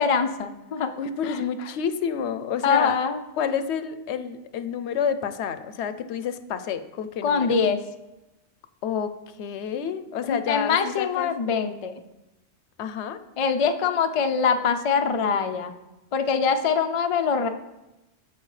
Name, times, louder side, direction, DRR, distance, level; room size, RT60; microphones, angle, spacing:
voice 1, 0.0-0.9 1.3-1.4 2.6-3.2 7.2-7.8 10.3-11.9 13.4-15.7 16.1-17.5, left 6 dB, 50° left, 7 dB, 0.4 m, -23 dB
voice 2, 1.0-3.0 3.4-7.6 8.8-11.3 12.8-13.2, left 7 dB, 80° left, 12 dB, 0.9 m, -29 dB
13.0 x 4.9 x 3.2 m, 0.98 s
omnidirectional pair, 1.1 m